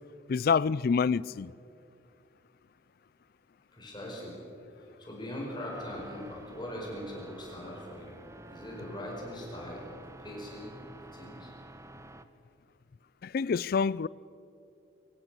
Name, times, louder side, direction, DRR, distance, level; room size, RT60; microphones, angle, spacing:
voice 1, 0.3-1.5 13.2-14.1, left 5 dB, 50° left, 0.4 m, -27 dB
voice 2, 3.7-4.4 4.8-8.2 8.5-9.8 10.2-10.8 11.1-11.5, left 1 dB, 25° left, 5.0 m, -41 dB
sound 1, 5.7-12.2, right 1 dB, 15° right, 0.7 m, -50 dB
24.5 x 16.5 x 6.8 m
head